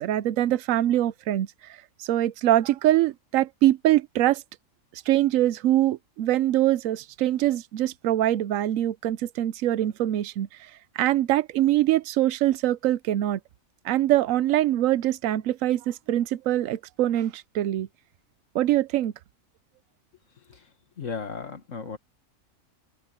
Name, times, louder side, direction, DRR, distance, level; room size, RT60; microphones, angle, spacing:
voice 1, 0.0-1.5 2.0-4.4 4.9-10.7 11.0-13.4 13.8-17.9 18.5-19.1, right 13 dB, 80° right, 1.0 m, -23 dB
voice 2, 21.0-22.0, left 5 dB, 70° left, 2.0 m, -35 dB
open air
omnidirectional pair, 1.4 m